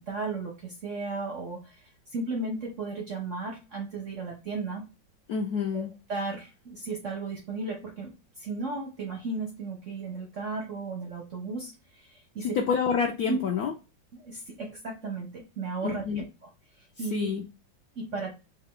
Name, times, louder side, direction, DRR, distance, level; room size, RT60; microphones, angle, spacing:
voice 1, 0.1-1.8 2.1-4.8 5.7-5.8 6.1-12.6 13.3-13.4 14.2-16.2 16.8-17.3 18.0-18.3, right 3 dB, 65° right, 1 dB, 0.8 m, -35 dB
voice 2, 5.3-5.9 12.4-13.7 15.8-16.2 17.1-17.4, left 6 dB, 75° left, 2 dB, 0.8 m, -28 dB
3.7 x 2.2 x 3.6 m, 0.28 s
omnidirectional pair, 2.1 m